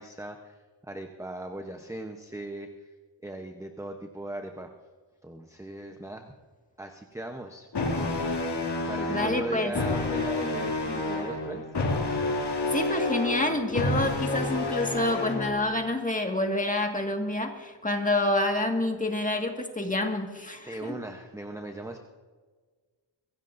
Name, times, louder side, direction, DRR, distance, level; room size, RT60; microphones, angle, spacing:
voice 1, 0.0-2.9 3.2-4.7 5.2-6.3 6.8-7.7 8.9-11.6 20.7-22.0, right 1 dB, 5° right, 4 dB, 0.8 m, -38 dB
sound 1, 7.7-15.7, left 2 dB, 60° left, 2.6 m, -29 dB
voice 2, 9.1-9.7 12.7-21.0, left 2 dB, 15° left, 3 dB, 1.8 m, -28 dB
23.0 x 16.0 x 2.6 m, 1.5 s
wide cardioid pair, 115°, 46 cm